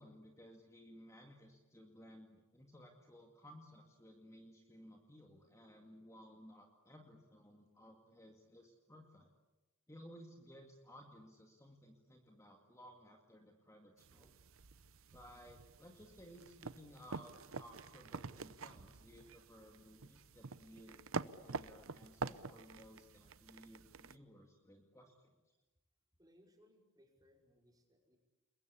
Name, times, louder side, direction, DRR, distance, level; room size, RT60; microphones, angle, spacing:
voice 1, 0.0-9.3 9.9-14.4 15.1-21.1 21.4-25.6, equal, 15° left, 2 dB, 2.1 m, -58 dB
sound 1, 14.0-24.2, right 4 dB, 65° right, 0.8 m, -47 dB
voice 2, 26.2-28.2, equal, 15° right, 1 dB, 5.2 m, -68 dB
29.5 x 22.0 x 8.5 m, 1.1 s
head